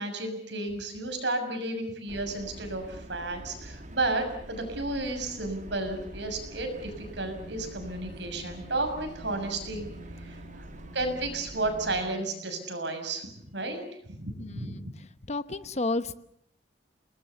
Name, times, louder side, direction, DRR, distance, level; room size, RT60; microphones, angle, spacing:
voice 1, 0.0-9.9 10.1-14.8, right 2 dB, 75° right, 6 dB, 6.5 m, -33 dB
sound 1, 2.1-12.0, equal, 45° right, 2.1 m, -45 dB
sound 2, 6.3-12.8, right 2 dB, 70° left, 4.3 m, -50 dB
voice 2, 14.4-14.9 15.3-16.2, left 2 dB, 40° left, 13 dB, 1.0 m, -31 dB
30.0 x 20.0 x 7.1 m, 0.69 s
head